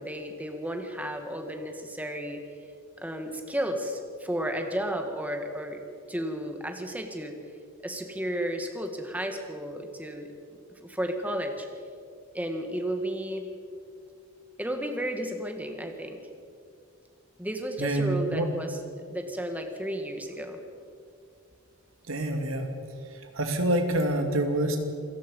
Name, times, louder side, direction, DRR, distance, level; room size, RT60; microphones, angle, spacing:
voice 1, 0.0-2.4 3.0-5.8 6.1-7.3 7.8-10.3 10.8-11.7 12.3-13.5 14.6-16.2 17.4-18.8 19.1-20.6, equal, 5° right, 4 dB, 1.8 m, -33 dB
voice 2, 17.8-18.5 22.1-22.7 23.1-24.8, right 1 dB, 75° right, 4 dB, 2.8 m, -27 dB
28.0 x 17.5 x 5.5 m, 2.3 s
head